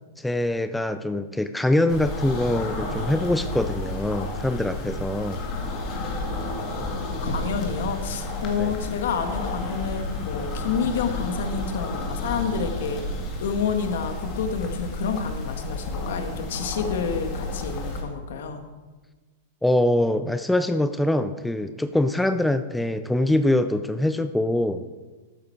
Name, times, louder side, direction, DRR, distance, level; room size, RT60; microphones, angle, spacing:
voice 1, 0.2-5.4 8.6-8.7 19.6-24.8, left 1 dB, 5° left, 10 dB, 0.3 m, -24 dB
sound 1, 1.9-18.0, left 2 dB, 30° left, 1.9 m, -31 dB
voice 2, 7.2-13.0 13.4-18.6, left 6 dB, 70° left, 6 dB, 1.5 m, -29 dB
13.0 x 8.9 x 4.6 m, 1.3 s
supercardioid pair, 160°, 0 cm